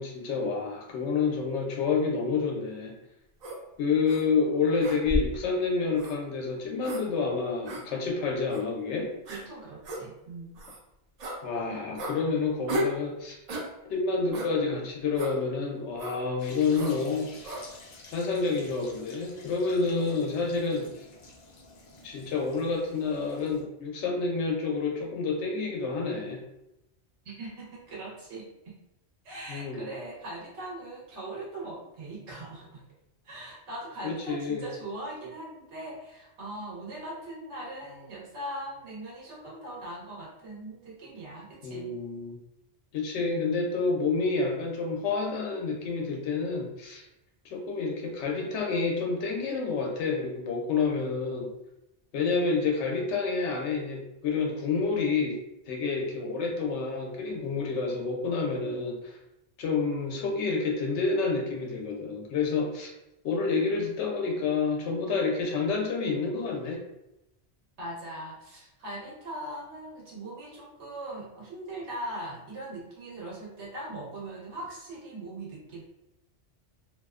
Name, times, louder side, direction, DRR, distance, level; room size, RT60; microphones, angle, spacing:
voice 1, 0.0-3.0 3.8-9.1 11.4-13.4 13.9-17.3 18.1-21.0 22.0-26.4 29.5-29.9 34.0-34.6 41.6-42.4 42.9-47.0 47.4-51.5 52.1-55.4 55.7-59.2 59.6-62.9 63.2-66.8, left 4 dB, 85° left, 0 dB, 0.9 m, -29 dB
sound 1, 3.4-3.6 4.1-4.2 4.8-5.4 6.0-6.2 6.8-7.0 7.7-7.8 8.5-8.6 9.3-9.4 9.8-10.0 10.6-10.8 11.2-11.4 12.0-12.2 12.7-13.0 13.5-13.7 14.3-14.5 15.2-15.4 16.0-16.2 16.7-17.0 17.4-17.6, equal, 55° right, 0.4 m, -33 dB
voice 2, 9.3-10.6 27.2-28.8 29.2-32.8 33.2-41.9 67.8-75.8, right 1 dB, 85° right, -5 dB, 1.1 m, -40 dB
sound 2, 16.4-23.6, left 3 dB, 55° left, 0.5 m, -51 dB
2.5 x 2.1 x 2.3 m, 0.88 s
omnidirectional pair, 1.1 m